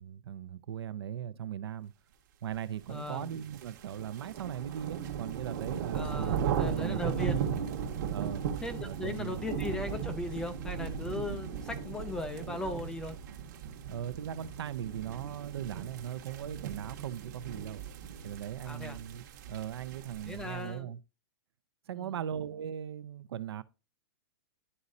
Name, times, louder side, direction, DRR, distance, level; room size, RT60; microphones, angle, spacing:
voice 1, 0.0-1.9 2.4-7.6 8.1-8.4 8.8-9.4 13.9-17.8 18.2-21.0 21.9-23.6, right 10 dB, 75° right, 0.6 m, -38 dB
voice 2, 2.9-3.3 5.9-7.4 8.6-13.2 18.6-19.0 20.2-20.9 21.9-22.2, left 2 dB, 5° left, 0.3 m, -38 dB
sound 1, 3.1-20.6, right 7 dB, 45° right, 1.1 m, -37 dB
11.0 x 4.1 x 2.6 m
supercardioid pair, 170°, 13 cm